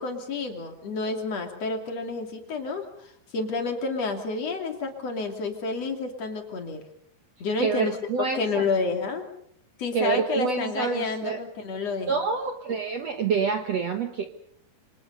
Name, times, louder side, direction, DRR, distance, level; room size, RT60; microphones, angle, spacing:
voice 1, 0.0-6.8 7.4-7.9 8.3-9.2 9.8-12.2, left 3 dB, 40° left, 4 dB, 3.5 m, -29 dB
voice 2, 7.6-8.6 9.9-11.4 12.1-14.3, right 5 dB, 80° right, 6 dB, 1.4 m, -27 dB
28.0 x 24.5 x 5.5 m, 0.68 s
omnidirectional pair, 5.0 m